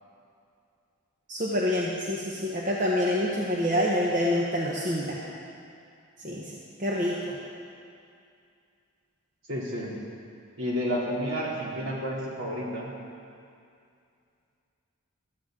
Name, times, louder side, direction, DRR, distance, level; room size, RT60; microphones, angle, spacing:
voice 1, 1.3-5.2 6.2-6.5 6.8-7.4, left 1 dB, 35° right, -4 dB, 1.1 m, -27 dB
voice 2, 9.5-9.9 10.6-12.9, equal, 65° right, -5 dB, 3.0 m, -30 dB
15.5 x 13.0 x 3.8 m, 2.4 s
head